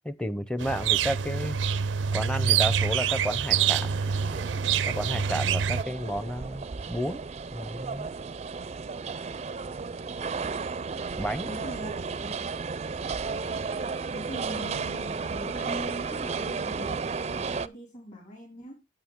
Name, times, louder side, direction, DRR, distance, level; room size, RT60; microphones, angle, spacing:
voice 1, 0.0-1.6 2.1-4.0 4.9-7.2 7.5-8.1 11.2-11.5, equal, 5° left, 0.6 m, -32 dB
sound 1, 0.6-5.8, right 8 dB, 90° right, 0.5 m, -26 dB
sound 2, 3.5-17.7, right 4 dB, 35° right, 0.4 m, -34 dB
voice 2, 11.4-11.9 12.2-12.4 14.1-18.7, equal, 45° left, 4.7 m, -42 dB
9.2 x 8.7 x 3.6 m
head